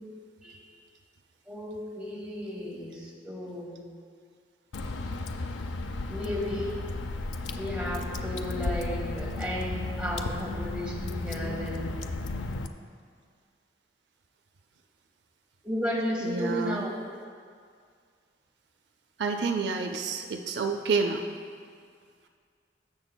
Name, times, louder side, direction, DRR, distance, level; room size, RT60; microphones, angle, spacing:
voice 1, 1.5-3.8 6.1-6.8 7.6-12.2 15.6-16.9, equal, 5° right, -5 dB, 1.5 m, -34 dB
Water / Drip, 4.7-12.7, left 2 dB, 90° left, 0.5 m, -34 dB
voice 2, 16.2-16.9 19.2-21.2, right 4 dB, 70° right, 4 dB, 0.5 m, -29 dB
16.5 x 6.9 x 2.2 m, 2.1 s
head